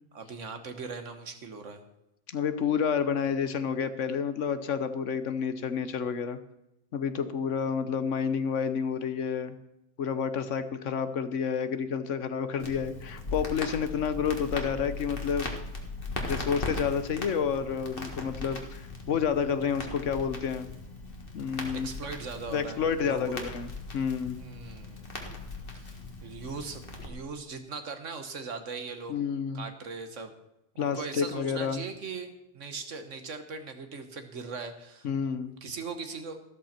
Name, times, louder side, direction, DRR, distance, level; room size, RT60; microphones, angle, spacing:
voice 1, 0.1-1.8 21.7-23.4 24.3-25.1 25.7-26.0 26.2-29.2 29.5-30.3 30.7-35.1 35.4-36.4, right 4 dB, 85° right, 8 dB, 1.7 m, -39 dB
voice 2, 2.3-6.4 6.9-9.5 10.0-15.5 16.3-20.7 21.3-21.9 22.5-24.4 29.1-29.6 30.8-31.8 35.0-35.5, left 6 dB, 90° left, 11 dB, 1.3 m, -29 dB
Crackle, 12.6-27.1, left 3 dB, 50° left, 2.0 m, -39 dB
13.5 x 13.0 x 4.4 m, 0.89 s
omnidirectional pair, 1.2 m